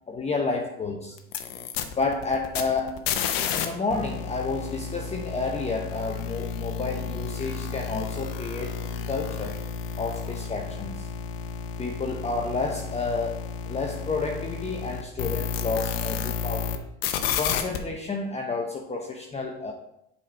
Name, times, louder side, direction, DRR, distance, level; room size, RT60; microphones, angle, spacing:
voice 1, 0.1-1.1 2.0-3.0 3.5-9.6 10.0-11.1 11.8-16.7 17.4-19.7, left 3 dB, 20° left, 1 dB, 0.9 m, -30 dB
sound 1, 1.2-3.7 3.9-16.8 17.0-17.8, left 7 dB, 85° left, 0.8 m, -32 dB
7.2 x 4.3 x 4.6 m, 0.83 s
supercardioid pair, 85°, 29 cm